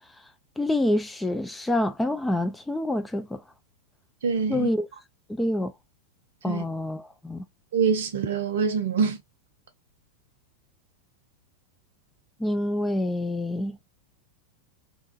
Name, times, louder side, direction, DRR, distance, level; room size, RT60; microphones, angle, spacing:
voice 1, 0.6-3.4 4.5-4.9 5.4-5.7 6.4-7.4 12.4-13.8, left 1 dB, 5° left, 0.3 m, -27 dB
voice 2, 4.2-4.7 6.5-6.6 7.7-9.2, right 6 dB, 60° right, 0.6 m, -25 dB
2.8 x 2.4 x 2.3 m
figure-of-eight pair, 90°, 0 cm